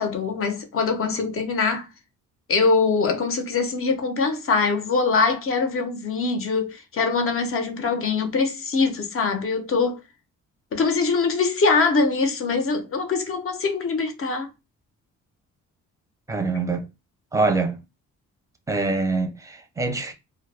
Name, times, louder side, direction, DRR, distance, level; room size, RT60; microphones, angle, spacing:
voice 1, 0.0-1.9 2.5-10.0 10.7-14.5, left 4 dB, 45° left, 0.6 m, -23 dB
voice 2, 16.3-16.8 17.3-17.8 18.7-20.1, right 3 dB, 10° right, 0.5 m, -24 dB
2.2 x 2.0 x 3.2 m
cardioid pair, 90°, 30 cm